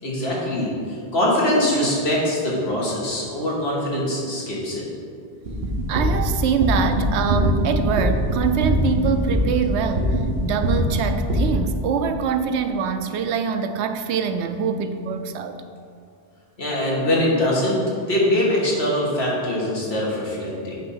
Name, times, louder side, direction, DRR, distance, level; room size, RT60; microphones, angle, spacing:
voice 1, 0.0-4.9 16.6-17.8 18.1-20.8, left 1 dB, 75° left, -5 dB, 1.9 m, -23 dB
sound 1, 5.5-11.5, equal, 65° right, 1.4 m, -22 dB
voice 2, 5.9-15.6, right 6 dB, 90° right, 8 dB, 0.9 m, -24 dB
8.7 x 3.5 x 5.6 m, 2.3 s
omnidirectional pair, 1.1 m